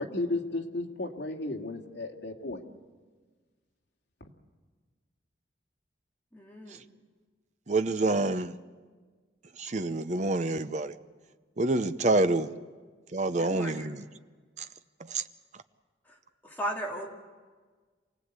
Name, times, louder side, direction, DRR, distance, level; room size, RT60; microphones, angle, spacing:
voice 1, 0.0-2.6 4.2-4.3, left 2 dB, 75° left, 2.3 m, -34 dB
voice 2, 6.3-6.8 13.3-13.9 16.1-16.2 16.4-17.1, equal, 10° left, 2.6 m, -36 dB
voice 3, 7.7-8.5 9.6-10.9 11.6-12.5 13.1-14.0 14.6-14.7 15.1-15.2, right 2 dB, 40° right, 0.8 m, -27 dB
28.5 x 18.5 x 8.2 m
head